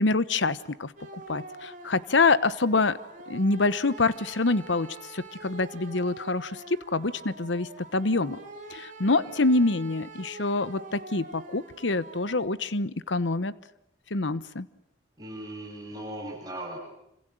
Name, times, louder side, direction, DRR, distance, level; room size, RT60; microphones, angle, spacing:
voice 1, 0.0-3.0 3.3-8.4 8.7-13.5 14.1-14.7, left 3 dB, 85° left, 15 dB, 1.0 m, -26 dB
sound 1, 1.0-12.5, right 2 dB, 45° right, 3.9 m, -45 dB
voice 2, 15.2-16.8, right 1 dB, 20° right, -3 dB, 7.7 m, -38 dB
28.0 x 26.5 x 7.8 m, 0.80 s
head